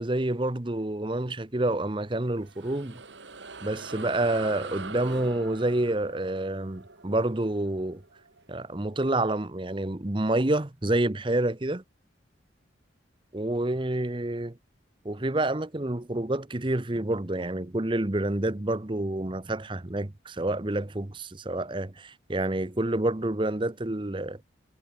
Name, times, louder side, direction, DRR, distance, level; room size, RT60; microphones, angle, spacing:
voice 1, 0.0-3.0 3.6-8.0 8.5-11.8 13.3-14.6 15.0-24.4, right 1 dB, 25° right, 0.9 m, -28 dB
sound 1, 2.2-9.1, right 4 dB, 70° right, 2.5 m, -43 dB
head